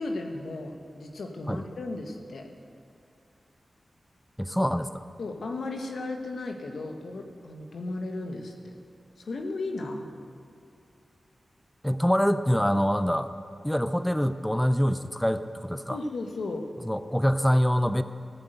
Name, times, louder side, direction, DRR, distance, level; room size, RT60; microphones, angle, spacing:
voice 1, 0.0-2.5 5.2-8.7 9.2-10.1 15.9-16.6, left 2 dB, 85° left, 4 dB, 1.3 m, -35 dB
voice 2, 4.4-5.0 11.8-13.3 13.6-16.0 16.9-18.0, equal, 5° left, 12 dB, 0.5 m, -25 dB
17.0 x 7.7 x 8.0 m, 2.3 s
wide cardioid pair, 75°, 0 cm